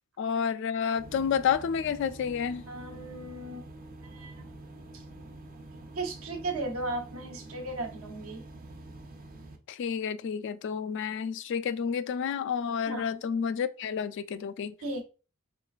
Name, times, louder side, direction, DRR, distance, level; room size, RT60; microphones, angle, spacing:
voice 1, 0.2-2.6 9.7-14.7, left 7 dB, 60° left, 0.3 m, -30 dB
sound 1, 0.9-9.6, right 2 dB, 45° right, 0.6 m, -47 dB
voice 2, 2.7-3.7 4.0-4.4 4.9-5.0 5.9-8.4 12.9-13.1 14.8-15.0, right 2 dB, 75° right, 0.8 m, -36 dB
3.7 x 3.2 x 2.4 m
head